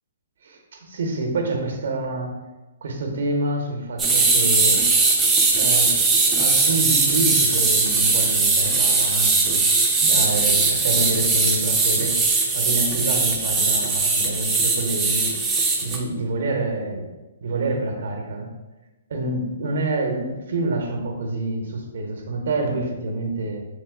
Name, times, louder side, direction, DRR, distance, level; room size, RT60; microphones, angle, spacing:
voice 1, 0.4-2.4 2.8-4.8 5.6-6.0 6.4-9.6 10.0-12.2 12.5-15.4 15.8-17.1 17.4-18.5 19.1-23.6, right 2 dB, 70° right, 3 dB, 0.8 m, -27 dB
sound 1, 4.0-16.0, right 3 dB, 10° right, 0.5 m, -20 dB
3.6 x 3.1 x 3.6 m, 1.1 s
hypercardioid pair, 155°, 0 cm